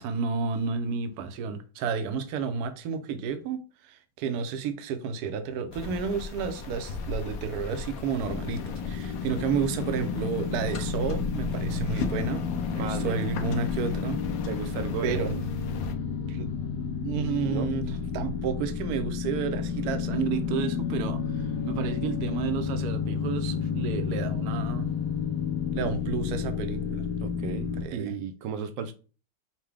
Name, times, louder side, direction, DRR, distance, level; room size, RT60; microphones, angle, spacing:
voice 1, 0.0-12.5 12.7-14.2 15.0-15.5 16.3-16.7 17.0-24.9 25.7-27.1 27.8-28.1, right 6 dB, 70° right, 1.0 m, -31 dB
sound 1, 5.7-15.9, left 4 dB, 70° left, 0.9 m, -37 dB
sound 2, 8.3-27.8, left 6 dB, 85° left, 1.2 m, -31 dB
voice 2, 12.7-13.2 14.5-15.2 17.4-17.7 27.2-28.9, right 6 dB, 85° right, 1.3 m, -34 dB
5.7 x 2.2 x 3.4 m
omnidirectional pair, 1.9 m